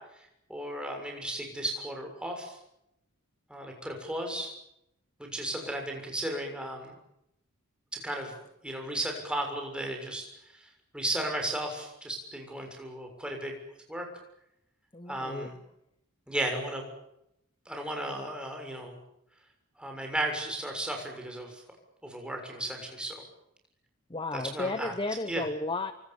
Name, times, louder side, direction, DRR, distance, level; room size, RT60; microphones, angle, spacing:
voice 1, 0.5-2.6 3.5-4.5 5.2-6.9 7.9-8.3 8.6-10.7 10.9-13.5 13.9-14.1 15.1-15.6 16.3-16.8 17.6-19.0 19.8-21.6 22.0-23.2 24.3-24.9 25.2-25.4, right 1 dB, 5° right, 2 dB, 6.8 m, -35 dB
voice 2, 14.9-15.5 24.1-25.9, left 2 dB, 20° left, 10 dB, 1.0 m, -33 dB
29.0 x 25.0 x 7.3 m, 0.81 s
head